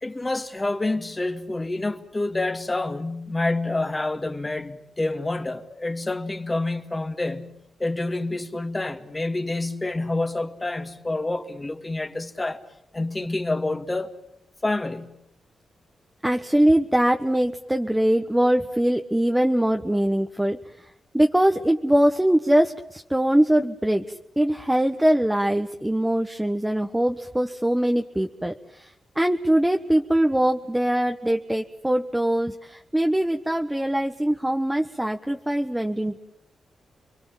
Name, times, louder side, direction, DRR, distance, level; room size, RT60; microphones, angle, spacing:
voice 1, 0.0-7.5 7.8-12.6 12.9-14.1 14.6-15.1, left 2 dB, 25° left, 2.3 m, -28 dB
voice 2, 16.2-20.9 21.1-36.2, right 1 dB, 10° right, 1.4 m, -22 dB
30.0 x 23.0 x 7.4 m
cardioid pair, 60°, 0 cm